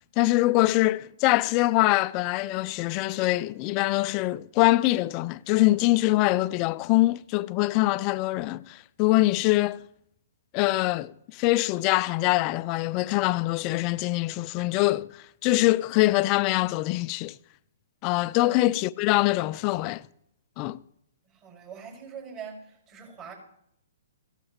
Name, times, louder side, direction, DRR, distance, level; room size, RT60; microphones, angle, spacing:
voice 1, 0.2-9.8 10.5-15.1 15.4-17.4 18.0-20.0 20.6-20.8, left 19 dB, 35° left, 0.4 m, -24 dB
voice 2, 21.3-23.3, right 7 dB, 35° right, 5.6 m, -42 dB
16.5 x 12.0 x 3.1 m
hypercardioid pair, 130°, 0 cm